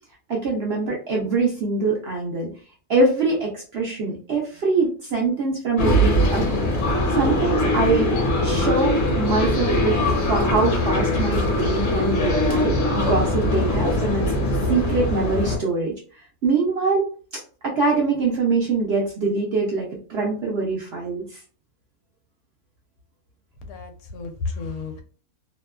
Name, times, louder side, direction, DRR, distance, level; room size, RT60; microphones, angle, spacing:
voice 1, 0.3-2.5 2.9-6.7 7.1-10.0 10.3-14.2 14.7-15.9 16.4-17.1 17.6-21.4, right 3 dB, 60° right, -2 dB, 0.7 m, -23 dB
sound 1, 5.8-15.6, left 1 dB, 55° left, 0.9 m, -21 dB
voice 2, 23.6-25.0, left 4 dB, 85° left, 6 dB, 1.1 m, -32 dB
2.7 x 2.2 x 2.3 m, 0.40 s
omnidirectional pair, 1.6 m